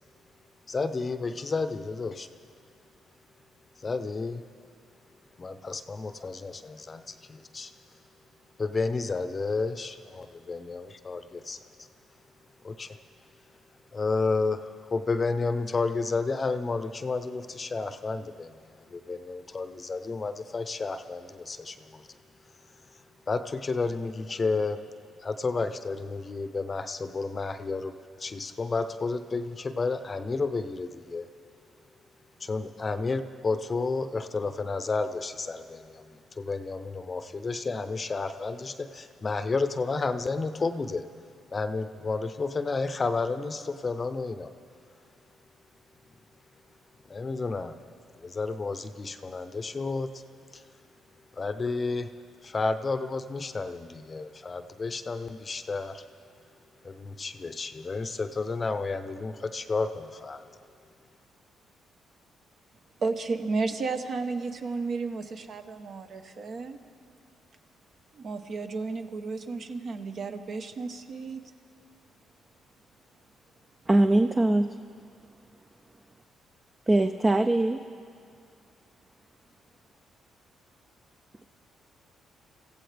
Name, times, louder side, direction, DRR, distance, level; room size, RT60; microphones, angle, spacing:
voice 1, 0.7-2.3 3.8-4.4 5.4-7.7 8.6-11.6 12.6-13.0 13.9-22.1 23.3-24.8 25.2-27.9 28.2-31.3 32.4-41.1 41.5-44.5 47.1-47.8 48.2-50.1 50.5-50.6 51.4-52.1 52.4-56.0 56.8-60.4, left 3 dB, 30° left, 10 dB, 0.7 m, -31 dB
voice 2, 63.0-66.8 68.1-71.4, right 4 dB, 55° right, 6 dB, 1.0 m, -33 dB
voice 3, 73.9-74.7 76.9-77.8, right 2 dB, 20° right, 7 dB, 0.5 m, -22 dB
26.0 x 15.0 x 3.4 m, 2.2 s
cardioid pair, 90°, 0 cm